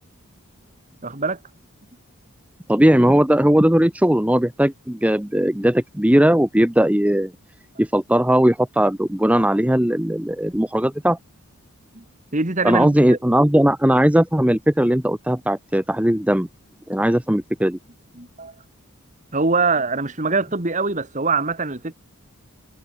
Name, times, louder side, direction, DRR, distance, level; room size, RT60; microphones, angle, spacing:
voice 1, 1.0-1.4 11.9-12.0 12.3-13.2 18.2-18.5 19.3-21.9, right 3 dB, 35° right, 1.8 m, -23 dB
voice 2, 2.7-7.3 7.8-11.2 12.6-16.5 16.9-17.8, right 1 dB, 5° right, 0.8 m, -18 dB
head